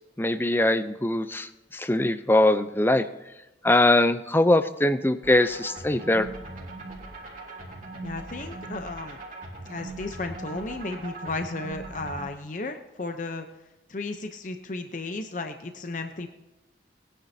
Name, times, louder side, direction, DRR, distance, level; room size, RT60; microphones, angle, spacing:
voice 1, 0.2-3.1 3.6-6.3, left 1 dB, 10° left, 11 dB, 0.6 m, -22 dB
sound 1, 5.2-12.3, right 2 dB, 45° right, 3.2 m, -40 dB
voice 2, 8.0-9.2 9.7-13.5 13.9-16.3, left 3 dB, 45° left, 6 dB, 0.8 m, -34 dB
20.5 x 10.0 x 2.8 m, 0.99 s
head